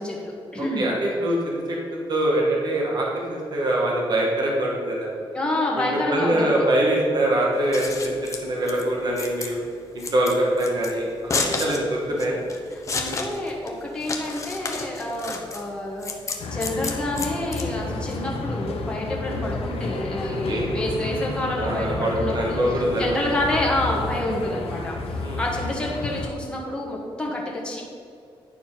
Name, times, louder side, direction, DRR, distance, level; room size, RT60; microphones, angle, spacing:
voice 1, 0.0-0.9 5.3-6.7 12.7-16.1 16.4-25.0 25.4-27.8, left 1 dB, 10° left, -3 dB, 1.6 m, -28 dB
voice 2, 0.8-1.8 2.1-5.1 6.1-8.1 8.4-9.6 9.9-12.4 20.5-20.7 21.6-23.1 25.2-25.4, right 1 dB, 45° right, -3 dB, 1.8 m, -23 dB
Scissors, 7.5-18.1, left 4 dB, 35° left, 0.9 m, -31 dB
sound 1, 16.4-26.3, left 3 dB, 85° left, 1.0 m, -31 dB
10.0 x 4.6 x 5.8 m, 2.5 s
wide cardioid pair, 155°, 10 cm